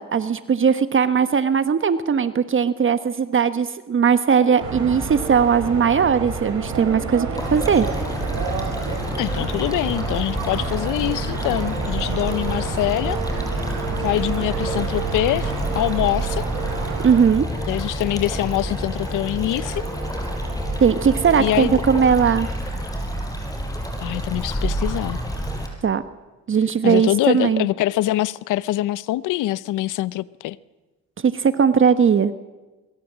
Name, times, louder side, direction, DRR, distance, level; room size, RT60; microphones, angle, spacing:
voice 1, 0.0-7.9 17.0-17.5 20.8-22.5 25.8-26.0 26.5-27.7 31.2-32.3, right 6 dB, 40° right, 1.2 m, -18 dB
sound 1, 4.4-22.1, right 3 dB, 15° right, 7.4 m, -36 dB
sound 2, 4.6-17.2, right 5 dB, 80° right, 7.8 m, -30 dB
sound 3, 7.4-25.7, equal, 10° left, 5.9 m, -29 dB
voice 2, 9.2-13.2 14.0-16.5 17.7-19.9 21.4-21.8 24.0-25.2 26.8-30.6, left 15 dB, 90° left, 0.8 m, -24 dB
23.5 x 22.5 x 7.5 m
cardioid pair, 90°, 30 cm